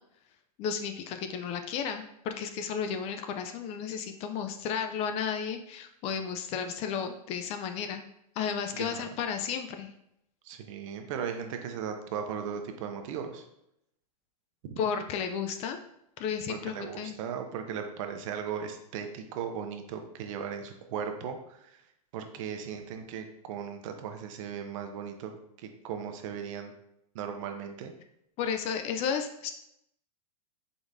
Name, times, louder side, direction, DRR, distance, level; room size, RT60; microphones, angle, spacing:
voice 1, 0.6-8.1 8.4-9.9 14.8-15.8 16.2-17.1 28.4-29.5, left 7 dB, 30° left, 7 dB, 0.4 m, -33 dB
voice 2, 8.7-9.1 10.4-13.5 14.6-14.8 16.5-21.8 22.1-25.3 25.6-26.7 27.1-27.9, right 7 dB, 55° right, 5 dB, 0.8 m, -37 dB
4.6 x 4.0 x 2.6 m, 0.78 s
hypercardioid pair, 120°, 20 cm